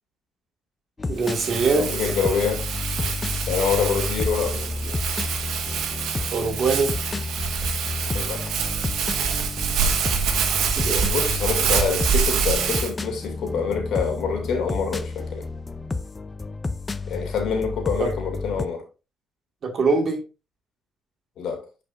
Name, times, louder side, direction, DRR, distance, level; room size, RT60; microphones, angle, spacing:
sound 1, 1.0-18.7, left 3 dB, 25° left, 0.5 m, -31 dB
voice 1, 1.0-2.2 6.3-7.0 10.8-11.0 18.0-18.1 19.6-20.2, right 4 dB, 55° right, 1.9 m, -23 dB
Crumpling crinkling, 1.2-12.9, right 7 dB, 80° right, 1.4 m, -26 dB
voice 2, 1.8-2.7 3.5-5.0 8.1-8.6 10.9-15.5 17.1-18.8 21.4-21.7, left 5 dB, 75° left, 2.3 m, -26 dB
9.7 x 5.1 x 2.5 m
cardioid pair, 90°, 0 cm